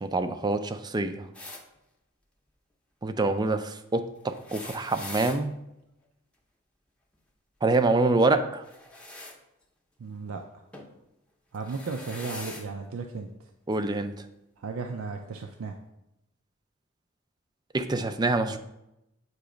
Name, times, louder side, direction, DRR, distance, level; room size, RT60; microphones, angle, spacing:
voice 1, 0.0-1.2 3.0-5.5 7.6-8.6 13.7-14.1 17.7-18.6, right 3 dB, 20° right, 9 dB, 0.3 m, -26 dB
sound 1, 1.3-1.6 4.3-5.4 8.6-9.4 10.7-10.9 11.5-12.7 13.7-13.8 15.0-15.1, left 2 dB, 5° left, 0.7 m, -42 dB
voice 2, 10.0-10.6 11.5-13.5 14.6-15.8, right 4 dB, 80° right, 4 dB, 0.5 m, -35 dB
7.9 x 3.0 x 4.9 m, 0.86 s
head